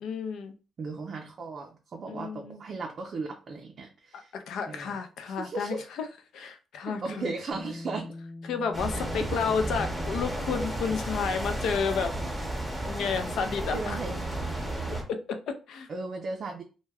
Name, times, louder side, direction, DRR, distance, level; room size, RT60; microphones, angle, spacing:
voice 1, 0.0-0.5 2.1-2.6 4.1-6.0 6.3-7.3 8.5-12.1 12.9-14.0 15.1-15.9, left 6 dB, 75° left, 7 dB, 0.5 m, -31 dB
voice 2, 0.8-4.3 4.7-4.9 5.3-5.9 6.9-8.1 8.9-9.3 13.7-14.2 15.9-16.6, right 3 dB, 50° right, 2 dB, 0.4 m, -36 dB
Bass guitar, 7.5-13.8, left 2 dB, 30° left, 0.8 m, -46 dB
sound 1, 8.7-15.0, right 1 dB, 5° right, 0.7 m, -33 dB
2.2 x 2.2 x 3.3 m, 0.34 s
cardioid pair, 90°, 0 cm